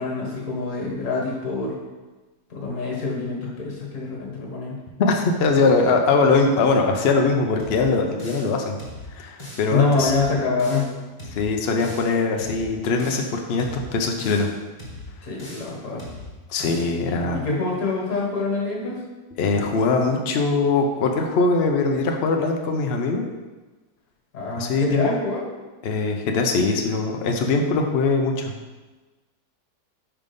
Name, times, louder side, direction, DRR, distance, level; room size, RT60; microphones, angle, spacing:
voice 1, 0.0-1.8 2.5-4.8 9.7-10.9 15.2-16.0 17.3-19.0 24.3-25.5, left 4 dB, 50° left, -2 dB, 1.8 m, -25 dB
voice 2, 5.0-8.7 9.1-10.1 11.4-14.5 16.5-17.4 19.4-23.2 24.6-25.1 25.8-28.5, left 3 dB, 75° left, 3 dB, 0.5 m, -21 dB
sound 1, 7.6-8.5 8.8-9.7 10.0-10.9 11.2-12.1 12.4-13.3 13.6-14.5 14.8-15.7 16.0-16.9, left 1 dB, 20° left, 1.2 m, -39 dB
5.1 x 4.3 x 5.3 m, 1.2 s
omnidirectional pair, 1.9 m